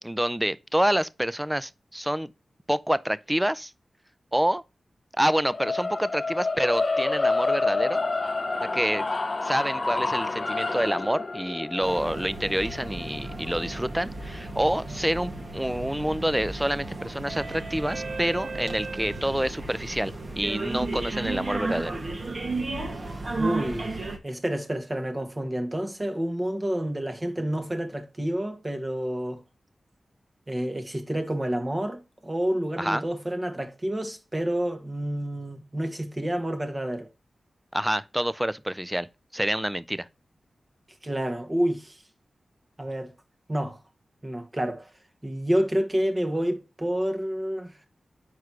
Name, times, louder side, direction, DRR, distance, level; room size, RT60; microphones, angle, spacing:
voice 1, 0.0-2.3 2.7-3.7 4.3-4.6 5.2-8.0 8.7-9.1 9.4-22.0 32.8-33.0 37.7-39.1 39.3-40.1, equal, 10° right, 0.5 m, -27 dB
sound 1, 5.5-15.7, left 3 dB, 45° left, 0.6 m, -29 dB
sound 2, 11.8-24.2, right 2 dB, 50° right, 1.5 m, -33 dB
voice 2, 23.4-24.0 24.2-29.4 30.5-37.1 41.0-42.0 42.8-43.1 43.5-43.8 44.2-44.9 45.2-47.7, right 1 dB, 25° right, 1.4 m, -29 dB
4.7 x 4.7 x 5.9 m
cardioid pair, 40°, 0 cm